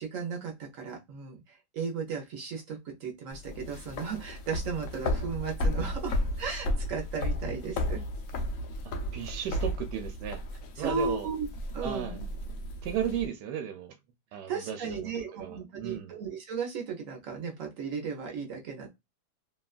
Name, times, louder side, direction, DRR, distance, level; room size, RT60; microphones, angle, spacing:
voice 1, 0.0-1.4 1.7-8.0 10.8-11.5 11.7-12.2 14.5-18.9, right 5 dB, 60° right, 1.0 m, -35 dB
sound 1, 3.3-13.3, left 1 dB, 65° left, 0.9 m, -33 dB
voice 2, 9.1-10.4 10.8-11.3 11.8-12.2 12.8-14.0 14.3-16.1, right 9 dB, 85° right, 1.2 m, -35 dB
2.9 x 2.3 x 2.3 m
omnidirectional pair, 1.8 m